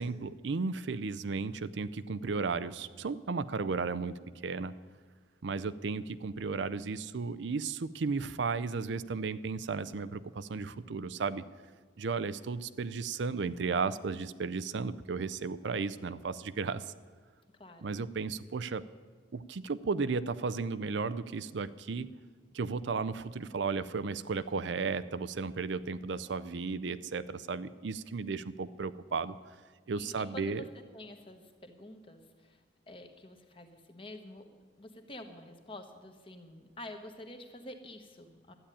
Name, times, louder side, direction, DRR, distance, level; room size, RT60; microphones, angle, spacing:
voice 1, 0.0-4.7 5.4-11.4 12.0-16.8 17.8-18.8 19.3-22.1 22.5-29.4 29.9-30.6, right 4 dB, 70° right, 14 dB, 0.5 m, -34 dB
voice 2, 17.6-17.9 30.0-30.6 30.9-32.6 32.9-34.4 34.8-38.5, left 1 dB, 30° left, 6 dB, 1.2 m, -48 dB
12.5 x 8.8 x 10.0 m, 1.5 s
head